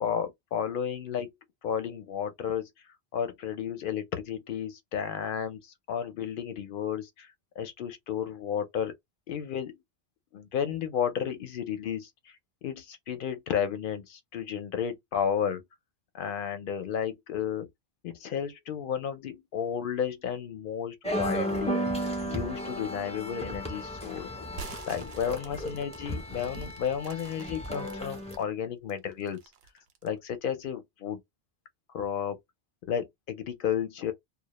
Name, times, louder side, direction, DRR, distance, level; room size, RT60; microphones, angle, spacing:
voice 1, 0.0-1.3 1.6-2.7 3.1-5.6 5.9-7.3 7.6-8.9 9.3-9.7 10.3-12.1 12.6-15.6 16.1-17.7 18.0-21.8 22.2-24.3 24.9-29.4 30.0-31.2 31.9-32.4 32.9-34.1, left 8 dB, 60° left, 0.7 m, -32 dB
sound 1, 21.0-28.4, equal, 10° left, 0.4 m, -34 dB
sound 2, 24.5-28.4 28.9-30.2, right 5 dB, 75° right, 0.8 m, -47 dB
2.2 x 2.0 x 2.9 m
omnidirectional pair, 1.1 m